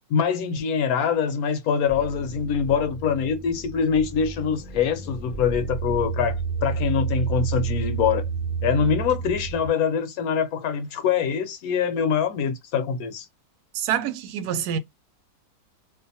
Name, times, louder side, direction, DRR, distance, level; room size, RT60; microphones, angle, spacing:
voice 1, 0.1-8.2 8.6-13.3, left 7 dB, 70° left, 1.0 m, -24 dB
sound 1, 1.9-9.7, right 5 dB, 55° left, 0.5 m, -30 dB
voice 2, 13.7-14.8, right 9 dB, 85° right, 1.1 m, -26 dB
2.6 x 2.4 x 2.6 m
omnidirectional pair, 1.7 m